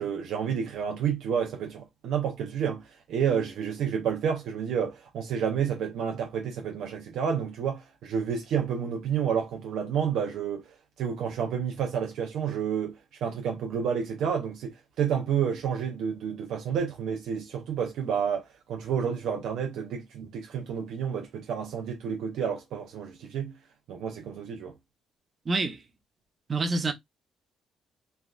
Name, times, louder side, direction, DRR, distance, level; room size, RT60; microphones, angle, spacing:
voice 1, 0.0-2.8 3.1-10.6 11.0-18.4 18.7-23.5 23.9-24.7, right 7 dB, 80° right, 0.6 m, -30 dB
voice 2, 25.5-25.8 26.5-26.9, right 3 dB, 35° right, 0.7 m, -27 dB
3.3 x 2.4 x 2.2 m
cardioid pair, 90°, 0 cm